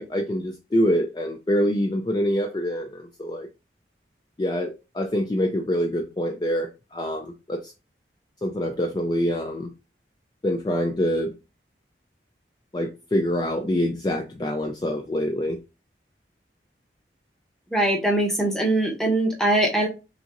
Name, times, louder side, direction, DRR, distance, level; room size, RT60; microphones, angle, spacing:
voice 1, 0.0-3.5 4.4-7.7 8.4-9.7 10.4-11.3 12.7-15.6, equal, 25° left, 4 dB, 0.3 m, -25 dB
voice 2, 17.7-19.9, right 1 dB, 5° left, -1 dB, 0.9 m, -22 dB
5.8 x 2.7 x 2.5 m, 0.29 s
head